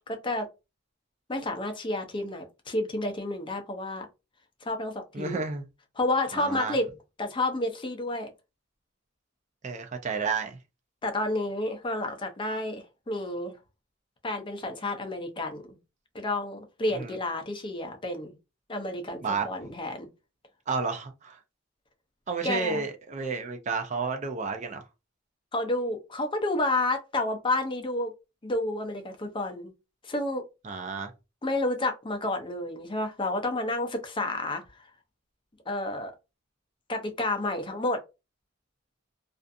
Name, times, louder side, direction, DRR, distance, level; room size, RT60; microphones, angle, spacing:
voice 1, 0.1-0.5 1.3-4.1 4.6-5.4 6.0-6.9 7.2-8.3 11.0-13.5 14.2-15.8 16.1-18.3 18.7-20.1 22.4-22.8 25.5-28.1 28.4-29.7 30.0-30.4 31.4-34.9 35.7-36.1 36.9-38.0, left 2 dB, 25° left, 0.5 m, -30 dB
voice 2, 5.1-5.7 6.3-6.7 9.6-10.6 16.9-17.1 19.2-19.5 20.7-21.4 22.3-24.8 30.6-31.1, right 4 dB, 35° right, 0.4 m, -31 dB
2.4 x 2.4 x 2.5 m
head